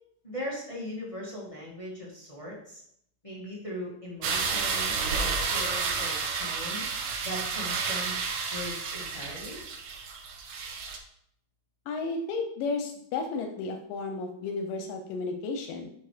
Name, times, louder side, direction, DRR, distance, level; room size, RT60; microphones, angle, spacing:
voice 1, 0.2-2.8 3.2-6.8 7.2-9.6, equal, 15° left, -5 dB, 1.0 m, -39 dB
sound 1, 4.2-11.0, right 5 dB, 80° right, 1.3 m, -31 dB
voice 2, 11.9-15.9, left 4 dB, 85° left, 5 dB, 2.4 m, -33 dB
7.5 x 5.0 x 5.0 m, 0.71 s
omnidirectional pair, 3.8 m